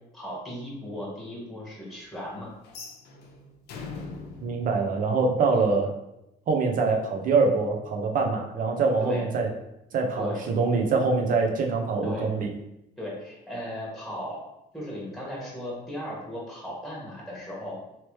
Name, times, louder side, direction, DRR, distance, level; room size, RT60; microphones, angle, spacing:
voice 1, 0.1-2.5 5.5-5.7 9.0-9.3 10.2-10.4 12.0-12.3 13.0-14.4 14.7-17.8, left 1 dB, ahead, -6 dB, 1.4 m, -36 dB
sound 1, 2.6-5.7, left 4 dB, 75° left, 0.6 m, -42 dB
voice 2, 4.4-5.9 6.5-9.5 9.9-12.5, right 4 dB, 55° right, 2 dB, 0.7 m, -24 dB
3.0 x 2.9 x 3.2 m, 0.87 s
cardioid pair, 110°, 17 cm